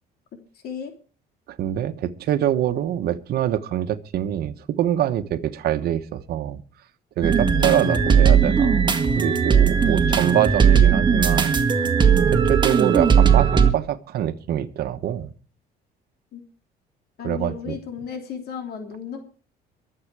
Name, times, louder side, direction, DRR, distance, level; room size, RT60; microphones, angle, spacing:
voice 1, 0.5-0.9 7.5-8.4 16.3-16.4 17.2-19.2, left 7 dB, 70° left, 4 dB, 3.2 m, -34 dB
voice 2, 1.6-6.6 7.2-8.9 9.2-11.6 12.3-15.3 17.2-17.8, right 11 dB, 70° right, 9 dB, 1.2 m, -24 dB
sound 1, 7.2-13.7, right 6 dB, 25° right, 1.9 m, -18 dB
22.5 x 8.0 x 4.8 m, 0.39 s
cardioid pair, 110°, 17 cm